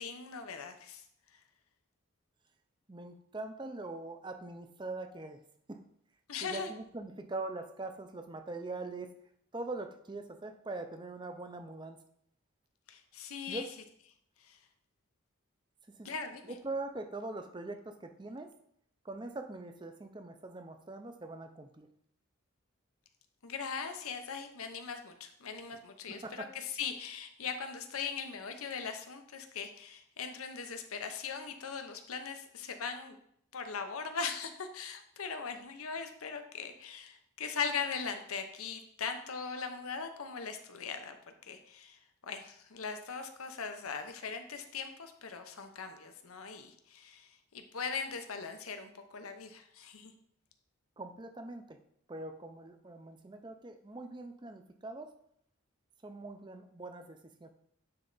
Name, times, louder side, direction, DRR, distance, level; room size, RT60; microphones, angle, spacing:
voice 1, 0.0-1.4 6.3-6.7 12.9-13.7 14.4-14.7 16.0-16.6 23.4-33.2 33.5-50.1, left 5 dB, 85° left, 7 dB, 0.8 m, -40 dB
voice 2, 2.9-5.4 5.7-5.8 6.4-9.1 9.5-12.0 13.5-13.7 15.9-16.1 16.6-18.5 19.0-21.9 26.1-26.5 51.0-51.8 52.1-55.1 56.0-57.5, right 2 dB, 20° right, 7 dB, 0.5 m, -42 dB
9.5 x 3.3 x 4.0 m, 0.69 s
head